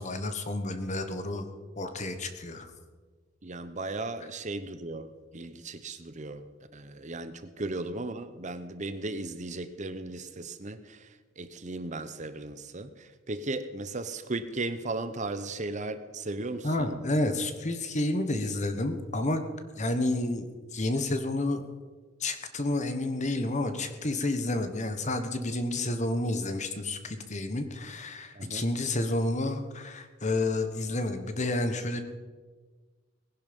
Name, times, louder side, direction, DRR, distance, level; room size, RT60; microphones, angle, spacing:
voice 1, 0.0-1.4 1.8-2.7 16.6-19.4 19.8-21.7 22.2-32.0, left 2 dB, 35° left, 9 dB, 1.4 m, -30 dB
voice 2, 3.4-6.4 6.7-11.1 11.4-17.0 28.3-28.6, right 2 dB, 40° right, 11 dB, 0.9 m, -36 dB
19.5 x 11.0 x 5.4 m, 1.4 s
head